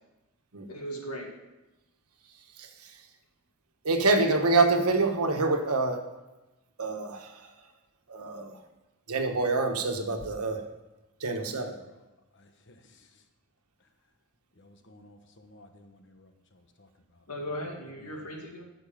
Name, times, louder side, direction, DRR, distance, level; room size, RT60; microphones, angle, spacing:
voice 1, 0.7-1.3 17.3-18.6, equal, 90° left, 0 dB, 2.4 m, -37 dB
voice 2, 3.8-6.0 6.8-7.2 8.1-8.5 9.1-10.6 11.2-11.7, right 3 dB, 90° right, 5 dB, 1.3 m, -26 dB
voice 3, 11.3-12.0 12.4-12.8 14.6-16.3 16.8-16.9, left 1 dB, 55° left, 6 dB, 1.1 m, -55 dB
14.0 x 6.5 x 5.2 m, 1.0 s
head